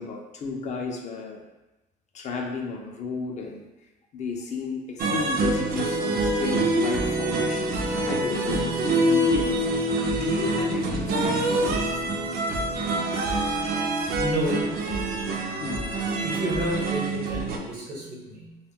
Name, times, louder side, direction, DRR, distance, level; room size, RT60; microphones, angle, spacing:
voice 1, 0.0-1.4 2.1-3.7 4.1-7.8 8.1-9.8 10.1-12.0 15.6-15.8, left 5 dB, 45° left, 1 dB, 0.4 m, -33 dB
sound 1, 5.0-17.6, right 2 dB, 60° right, 0.4 m, -25 dB
voice 2, 14.2-14.8 16.2-18.6, right 1 dB, 80° right, -4 dB, 0.9 m, -30 dB
2.2 x 2.1 x 3.5 m, 1.0 s
cardioid pair, 110°, 17 cm